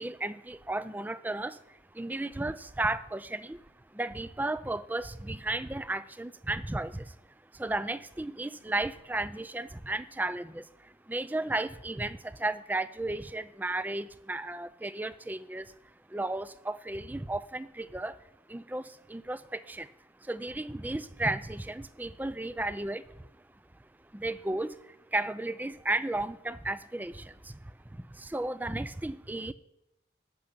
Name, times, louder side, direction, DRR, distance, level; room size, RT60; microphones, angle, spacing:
voice 1, 0.0-3.6 3.9-7.2 7.5-15.7 16.1-18.2 18.5-19.9 20.2-23.3 23.8-29.5, right 2 dB, 10° right, 15 dB, 0.4 m, -34 dB
11.5 x 6.6 x 8.5 m, 0.88 s
head